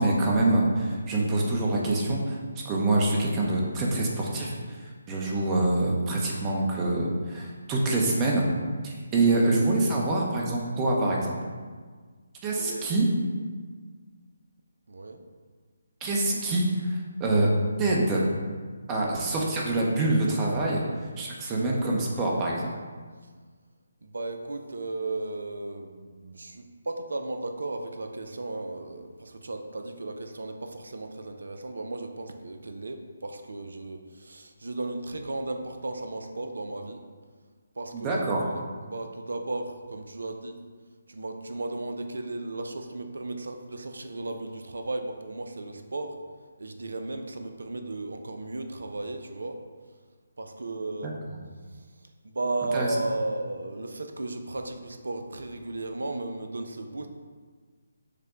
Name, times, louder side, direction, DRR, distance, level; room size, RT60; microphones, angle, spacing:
voice 1, 0.0-2.4 2.6-8.5 8.8-11.4 12.4-13.1 16.0-17.5 17.8-18.2 18.9-20.9 21.2-22.7 37.9-38.4 52.7-52.9, right 2 dB, 20° right, -3 dB, 0.7 m, -25 dB
voice 2, 5.2-5.5 12.6-12.9 14.9-15.2 24.0-37.0 37.8-40.6 41.1-46.2 46.6-49.6 50.4-51.1 51.7-51.8 52.2-57.1, right 2 dB, 70° right, 6 dB, 0.5 m, -35 dB
6.6 x 2.2 x 3.7 m, 1.5 s
figure-of-eight pair, 145°, 0 cm